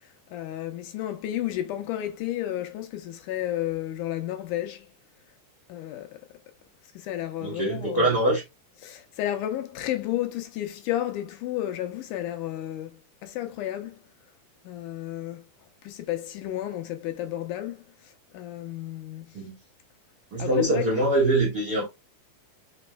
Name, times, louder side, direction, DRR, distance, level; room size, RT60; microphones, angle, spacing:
voice 1, 0.3-4.9 5.7-6.1 7.0-8.1 8.8-12.9 13.2-14.0 14.7-15.4 15.8-17.8 18.3-19.3 20.4-21.0, left 13 dB, 80° left, 2.0 m, -32 dB
voice 2, 7.4-8.4 19.3-19.6 20.3-21.9, right 2 dB, 80° right, 0.8 m, -23 dB
5.2 x 3.0 x 2.2 m
omnidirectional pair, 3.8 m